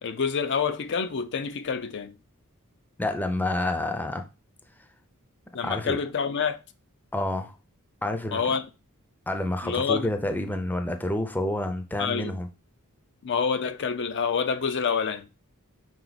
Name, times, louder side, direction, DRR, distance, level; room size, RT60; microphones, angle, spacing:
voice 1, 0.0-2.1 5.5-6.6 8.3-8.7 9.6-10.1 12.0-12.4 13.2-15.3, left 6 dB, 55° left, 0.5 m, -27 dB
voice 2, 3.0-4.2 5.6-6.0 7.1-7.5 8.0-8.4 9.3-12.5, left 1 dB, 10° left, 0.6 m, -28 dB
5.6 x 4.5 x 4.0 m
head